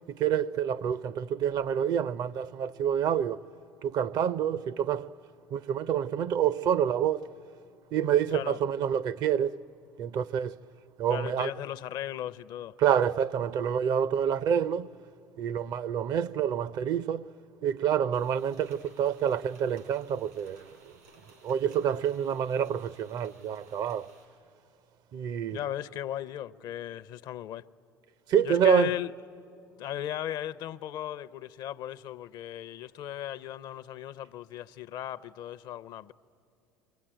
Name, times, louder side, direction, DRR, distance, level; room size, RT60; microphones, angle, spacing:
voice 1, 0.1-3.4 3.8-5.1 5.5-7.3 7.9-9.6 10.0-10.6 11.0-11.5 12.8-14.9 15.4-17.3 17.6-20.8 21.4-24.1 25.1-25.6 28.3-28.9, right 9 dB, 50° right, 0.5 m, -27 dB
voice 2, 11.1-12.8 25.5-27.7 28.4-29.1 29.8-36.1, left 12 dB, 55° left, 0.6 m, -36 dB
sound 1, 18.1-24.3, right 3 dB, 85° right, 5.0 m, -59 dB
28.0 x 23.0 x 9.0 m
hypercardioid pair, 80°, 8 cm